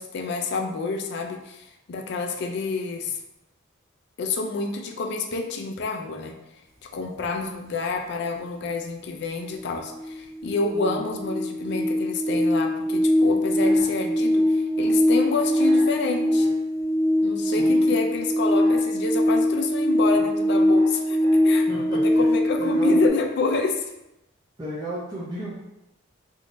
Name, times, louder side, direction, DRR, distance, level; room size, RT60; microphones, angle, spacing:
voice 1, 0.0-3.2 4.2-6.3 6.9-16.5 17.2-21.2 21.4-21.7 21.9-23.9, left 3 dB, 55° left, 3 dB, 0.4 m, -28 dB
sound 1, 9.5-9.6 9.9-23.1, left 1 dB, 65° right, 0.8 m, -22 dB
voice 2, 10.7-11.2 17.4-18.0 21.7-22.3 22.6-23.0 24.6-25.6, right 1 dB, 20° right, -8 dB, 0.5 m, -35 dB
3.5 x 2.7 x 2.5 m, 0.89 s
head